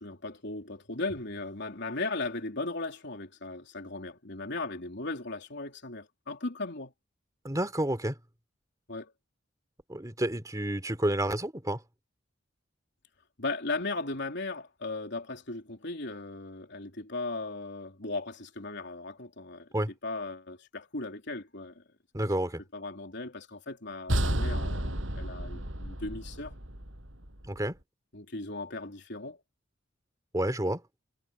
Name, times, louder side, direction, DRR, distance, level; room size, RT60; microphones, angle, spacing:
voice 1, 0.0-6.9 8.9-9.1 13.4-19.7 20.0-21.8 22.7-26.6 28.1-29.4, left 2 dB, 65° left, 3.6 m, -37 dB
voice 2, 7.4-8.2 9.9-11.8 19.7-19.9 22.1-22.6 27.5-27.8 30.3-30.8, right 1 dB, 20° right, 3.0 m, -30 dB
sound 1, 24.1-27.6, right 1 dB, 85° right, 6.7 m, -32 dB
head